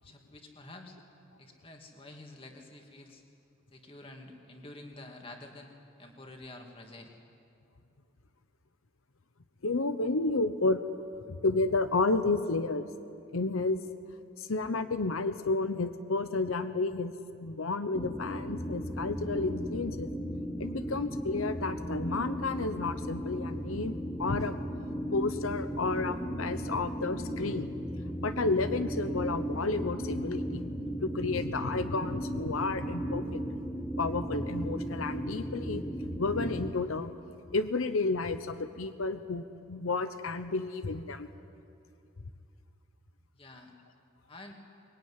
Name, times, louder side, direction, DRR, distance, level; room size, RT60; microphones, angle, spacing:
voice 1, 0.0-1.0 1.4-3.2 3.7-5.7 6.0-7.2 43.4-43.8 44.3-44.5, left 2 dB, 25° left, 2 dB, 2.4 m, -49 dB
voice 2, 9.6-10.8 11.3-12.9 13.3-13.8 14.4-17.1 17.4-20.1 20.6-24.5 25.1-27.7 28.2-30.7 31.0-33.4 34.0-35.8 36.2-37.1 37.5-41.3, left 3 dB, 90° left, 10 dB, 0.9 m, -31 dB
sound 1, 17.9-36.7, equal, 10° left, 1.2 m, -36 dB
23.0 x 21.5 x 9.8 m, 2.5 s
head